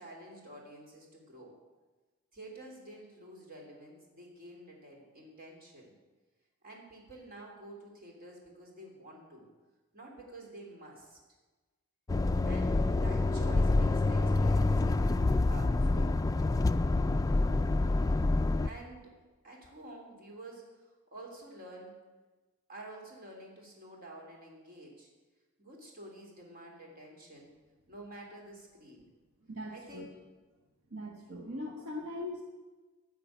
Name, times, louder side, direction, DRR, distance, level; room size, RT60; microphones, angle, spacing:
voice 1, 0.0-1.5 2.3-5.9 6.6-9.5 9.9-11.2 12.4-16.1 18.6-19.1 19.4-22.0 22.7-25.1 25.6-27.5 27.9-29.1 29.7-30.1, right 1 dB, 40° right, -1 dB, 3.0 m, -49 dB
sound 1, 12.1-18.7, left 2 dB, 15° left, 0.3 m, -27 dB
voice 2, 29.4-30.1 30.9-32.4, left 1 dB, 75° right, 0 dB, 1.5 m, -40 dB
13.0 x 6.0 x 9.2 m, 1.2 s
head